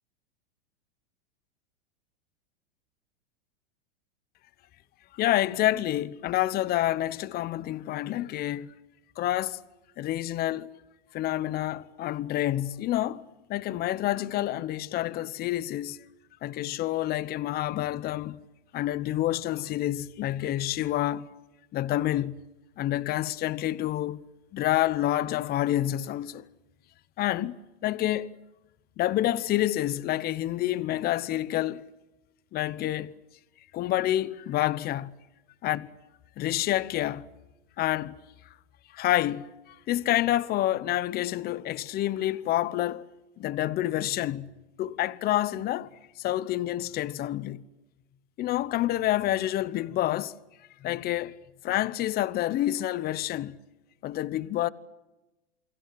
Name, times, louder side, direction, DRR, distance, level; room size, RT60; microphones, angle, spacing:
voice 1, 5.1-8.7 9.2-9.6 10.0-10.7 11.1-13.2 13.5-16.0 16.4-18.4 18.7-21.3 21.7-22.4 22.8-24.2 24.5-26.4 27.2-27.6 27.8-28.4 29.0-31.8 32.5-33.2 33.7-35.1 35.6-35.9 36.4-37.3 37.8-38.2 38.9-43.1 43.4-44.5 44.8-45.9 46.2-47.6 48.4-50.3 50.8-51.4 51.6-53.6 54.0-54.7, left 14 dB, 30° left, 1.0 m, -28 dB
29.0 x 23.0 x 7.8 m
hypercardioid pair, 135°, 34 cm